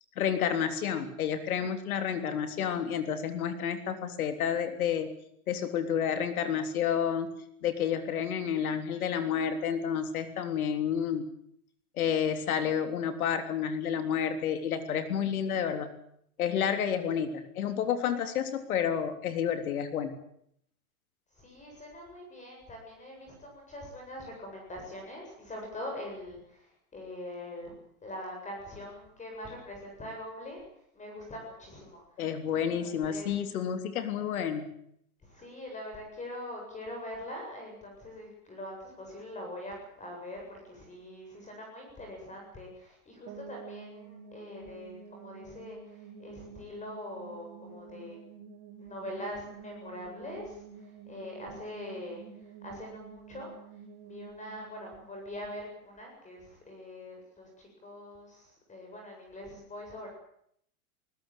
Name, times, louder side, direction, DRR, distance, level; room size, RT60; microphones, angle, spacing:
voice 1, 0.2-5.1 5.5-7.3 7.6-11.2 12.0-15.9 16.4-20.1 32.2-34.7, left 8 dB, 75° left, 8 dB, 3.5 m, -30 dB
voice 2, 21.3-30.6 30.9-32.2 32.8-33.4 35.2-48.2 48.8-53.5 54.0-60.1, left 1 dB, 15° left, 1 dB, 7.9 m, -43 dB
sound 1, 43.3-56.1, right 6 dB, 30° right, 7.0 m, -50 dB
20.5 x 20.0 x 9.3 m, 0.71 s
hypercardioid pair, 125°, 44 cm